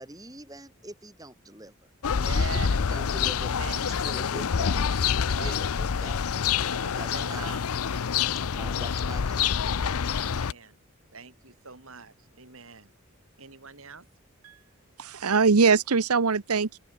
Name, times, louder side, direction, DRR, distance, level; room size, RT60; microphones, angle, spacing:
voice 1, 0.0-1.8 2.3-6.3 6.9-7.6 8.5-9.6, right 1 dB, 15° right, 7.4 m, -44 dB
sound 1, 2.0-10.5, left 7 dB, 80° left, 0.6 m, -27 dB
voice 2, 2.1-2.8 3.6-3.8 5.2-5.6 6.6-7.6 10.1-10.8 11.1-12.9 13.4-14.1, right 4 dB, 70° right, 3.8 m, -41 dB
voice 3, 15.0-16.8, right 5 dB, 90° right, 0.9 m, -22 dB
open air
head